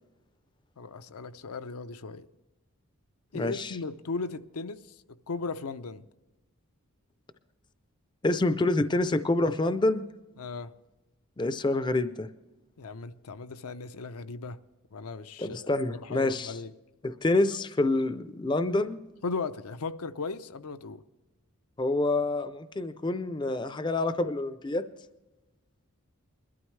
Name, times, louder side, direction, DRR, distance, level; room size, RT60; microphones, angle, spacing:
voice 1, 0.8-2.3 3.3-4.8 5.3-6.0 10.4-10.7 12.8-14.6 14.9-16.7 19.2-21.0, left 4 dB, 85° left, 0.6 m, -37 dB
voice 2, 3.3-3.8 8.2-10.0 11.4-12.3 15.4-16.6 17.0-19.0 21.8-24.8, left 2 dB, 20° left, 0.4 m, -27 dB
21.0 x 12.5 x 3.2 m
head